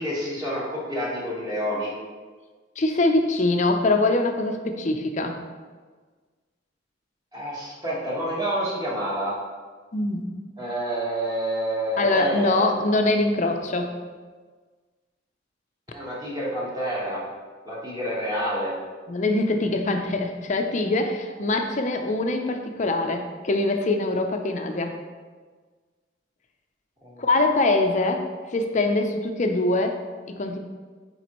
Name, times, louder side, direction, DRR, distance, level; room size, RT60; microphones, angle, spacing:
voice 1, 0.0-1.9 7.3-9.4 10.6-12.8 15.9-17.2 17.6-18.7 27.0-27.2, right 1 dB, 20° right, -6 dB, 1.5 m, -28 dB
voice 2, 2.8-5.4 9.9-10.3 12.0-13.9 19.1-24.9 27.2-28.3 28.5-30.0 30.4-30.6, left 2 dB, 40° left, 5 dB, 0.6 m, -23 dB
9.3 x 3.8 x 3.0 m, 1.4 s
head